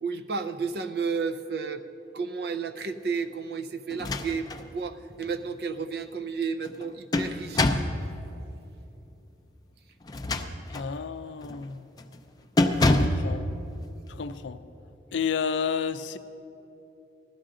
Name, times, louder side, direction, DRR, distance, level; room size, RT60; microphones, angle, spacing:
voice 1, 0.0-1.8 2.1-7.9, right 5 dB, 55° right, 8 dB, 0.5 m, -32 dB
sound 1, 3.9-4.7 5.1-5.2 6.6-8.0 10.0-10.9 11.4-11.7 12.0-12.2 12.6-13.3, left 2 dB, 20° left, 0.4 m, -25 dB
voice 2, 10.7-11.8 13.0-13.4 14.2-14.6 15.1-16.2, left 6 dB, 80° left, 11 dB, 0.5 m, -30 dB
16.0 x 12.5 x 3.7 m, 2.9 s
head